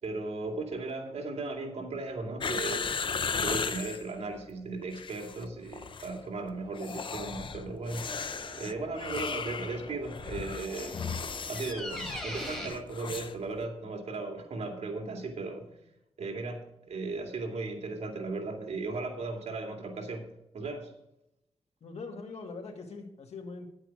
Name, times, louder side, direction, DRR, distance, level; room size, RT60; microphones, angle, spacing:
voice 1, 0.0-3.0 3.4-8.1 8.6-11.0 11.5-15.7 16.2-20.9, right 3 dB, 90° right, 3 dB, 2.4 m, -36 dB
sound 1, 2.4-4.0 4.8-5.5 5.7-6.1 6.7-13.4 13.6-13.7, left 5 dB, 50° left, 0.6 m, -36 dB
sound 2, 7.3-12.7, equal, 5° left, 4.0 m, -43 dB
voice 2, 21.8-23.7, left 4 dB, 75° left, 2 dB, 2.2 m, -42 dB
10.0 x 8.8 x 4.8 m, 0.83 s
wide cardioid pair, 120°, 11 cm